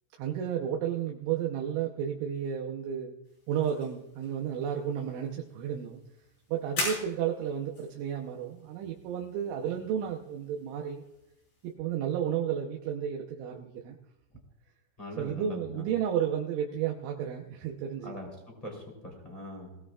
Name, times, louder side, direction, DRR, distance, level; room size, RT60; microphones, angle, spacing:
voice 1, 0.2-3.2 3.5-6.0 6.5-11.0 11.6-14.0 15.2-18.2, right 9 dB, 75° right, 1 dB, 3.2 m, -32 dB
sound 1, 3.2-11.7, left 2 dB, 55° left, 8.0 m, -43 dB
voice 2, 15.0-15.9 18.0-19.8, left 1 dB, 10° left, -1 dB, 2.8 m, -42 dB
22.5 x 17.0 x 2.5 m, 0.90 s
omnidirectional pair, 5.8 m